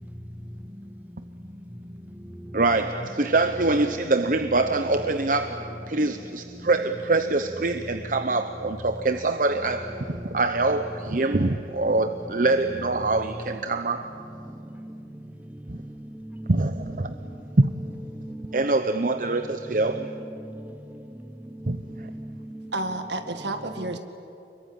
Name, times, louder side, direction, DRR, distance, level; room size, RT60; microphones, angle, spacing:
voice 1, 2.5-14.1 15.7-15.8 16.5-17.1 17.6-17.7 18.5-20.1 21.7-22.1, right 2 dB, 45° right, 8 dB, 0.8 m, -24 dB
voice 2, 15.7-16.5 18.1-18.6 20.4-21.0 21.6-22.7, right 1 dB, 10° right, 12 dB, 0.7 m, -40 dB
voice 3, 22.7-24.0, right 2 dB, 75° right, 6 dB, 2.1 m, -30 dB
25.5 x 22.5 x 10.0 m, 2.8 s
head